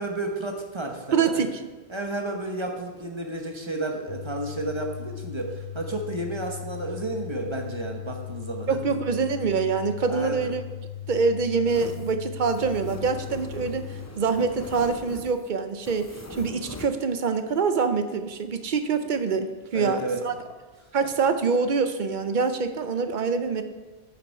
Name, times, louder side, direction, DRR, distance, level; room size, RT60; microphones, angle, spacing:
voice 1, 0.0-1.5 1.9-9.0 10.1-10.5 19.7-20.2, right 2 dB, 25° right, 2 dB, 1.0 m, -32 dB
voice 2, 1.1-1.6 8.7-10.6 11.1-20.3 20.9-23.6, right 5 dB, 50° right, 9 dB, 0.7 m, -25 dB
sound 1, 4.1-14.1, left 11 dB, 60° left, 1.0 m, -38 dB
sound 2, 11.7-16.9, left 3 dB, 20° left, 0.6 m, -42 dB
9.5 x 6.9 x 4.7 m, 1.2 s
omnidirectional pair, 1.1 m